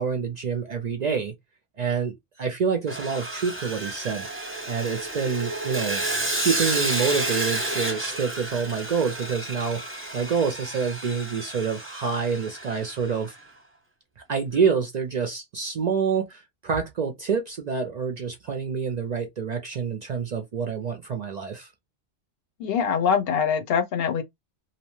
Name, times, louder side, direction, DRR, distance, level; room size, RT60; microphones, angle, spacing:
voice 1, 0.0-1.3 1.8-4.3 4.7-6.0 6.4-13.4 14.3-21.7, right 6 dB, 55° right, 0.5 m, -27 dB
Sawing, 2.9-13.1, right 1 dB, 15° right, 0.8 m, -31 dB
voice 2, 22.6-24.2, left 6 dB, 70° left, 0.8 m, -23 dB
2.8 x 2.0 x 2.9 m
omnidirectional pair, 1.1 m